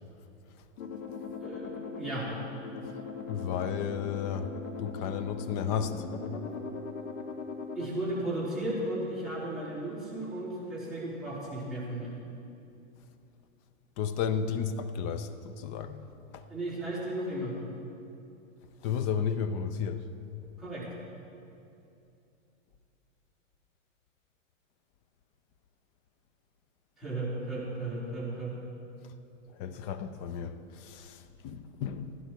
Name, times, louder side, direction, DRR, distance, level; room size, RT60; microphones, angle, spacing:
sound 1, 0.8-7.9, left 5 dB, 80° left, 1.8 m, -40 dB
voice 1, 1.4-2.3 7.8-12.1 16.5-17.6 20.6-20.9 27.0-28.6, right 1 dB, ahead, 3.9 m, -35 dB
voice 2, 3.3-6.0 14.0-16.0 16.3-16.4 18.8-20.1 29.6-32.1, left 7 dB, 25° left, 0.5 m, -33 dB
15.5 x 11.5 x 4.6 m
hypercardioid pair, 135°, 39 cm